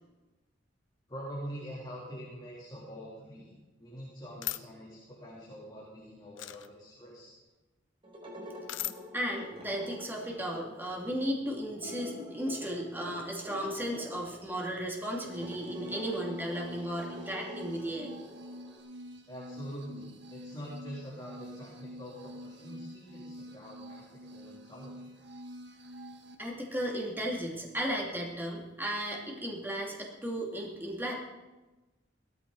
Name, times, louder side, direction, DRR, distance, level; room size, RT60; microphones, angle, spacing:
voice 1, 1.1-3.5 3.8-7.3 19.3-25.4, equal, 25° left, -7 dB, 3.3 m, -45 dB
sound 1, 4.4-4.6 6.4-6.7 8.7-8.9, left 15 dB, 85° left, 0.6 m, -35 dB
sound 2, 8.0-18.8, left 1 dB, 30° right, 3.3 m, -46 dB
voice 2, 9.1-18.1 26.4-31.1, equal, 10° right, -2 dB, 2.4 m, -35 dB
sound 3, 15.3-26.3, equal, 65° right, 1.5 m, -47 dB
17.0 x 13.5 x 4.1 m, 1.1 s
head